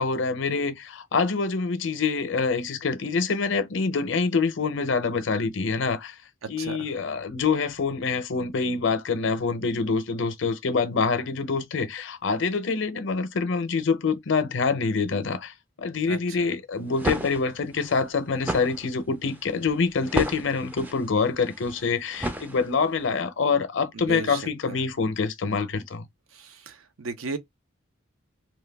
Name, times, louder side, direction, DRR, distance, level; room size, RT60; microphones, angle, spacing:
voice 1, 0.0-6.2 6.5-26.1, left 4 dB, 60° left, 0.6 m, -26 dB
voice 2, 16.1-16.5 23.9-24.4 24.7-24.8 26.3-27.4, right 5 dB, 85° right, 0.6 m, -35 dB
sound 1, 16.7-23.0, right 1 dB, 10° right, 0.3 m, -33 dB
2.8 x 2.2 x 3.3 m
head